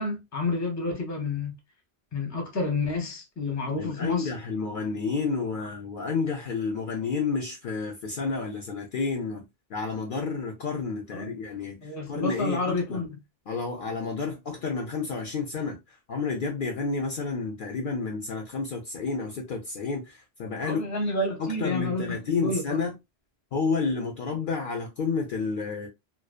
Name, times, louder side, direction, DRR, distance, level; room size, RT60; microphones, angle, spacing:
voice 1, 0.0-1.5 2.1-4.3 11.1-11.3 11.8-13.2 20.6-22.2 22.4-22.6, left 3 dB, 20° left, 0.6 m, -29 dB
voice 2, 3.7-9.4 9.7-13.0 13.5-20.8 21.4-22.9 23.5-25.9, left 4 dB, 60° left, 0.6 m, -30 dB
2.6 x 2.0 x 2.3 m
omnidirectional pair, 1.1 m